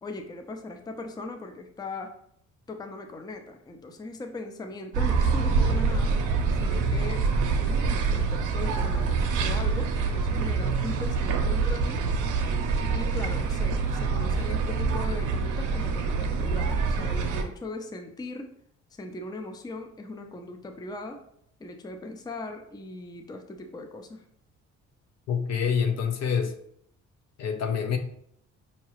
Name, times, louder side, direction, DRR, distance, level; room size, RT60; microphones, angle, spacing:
voice 1, 0.0-2.2 2.7-6.2 6.5-12.0 12.9-18.5 18.9-21.2 21.6-24.2, left 2 dB, 15° left, 5 dB, 0.4 m, -39 dB
sound 1, 4.9-17.4, right 4 dB, 90° right, 0.6 m, -26 dB
voice 2, 25.3-26.5 27.4-28.0, left 7 dB, 60° left, 6 dB, 0.6 m, -26 dB
4.7 x 2.8 x 3.0 m, 0.69 s
cardioid pair, 90°, 30 cm